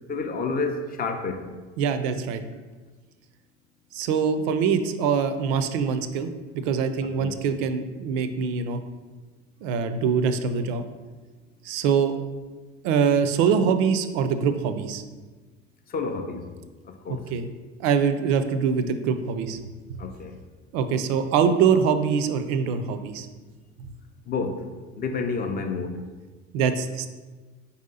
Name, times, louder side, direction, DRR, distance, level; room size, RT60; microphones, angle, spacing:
voice 1, 0.1-1.5 7.2-7.3 15.9-16.5 16.9-17.3 20.0-20.4 24.3-24.7 25.0-26.0, left 4 dB, 25° left, 0.4 m, -29 dB
voice 2, 1.8-2.4 3.9-6.3 6.6-8.8 9.6-10.8 11.6-12.1 12.8-15.0 17.3-17.5 17.8-19.6 20.7-23.3 23.8-23.9 26.5-27.1, right 6 dB, 55° right, 0.5 m, -23 dB
4.5 x 2.7 x 3.9 m
figure-of-eight pair, 65°, 38 cm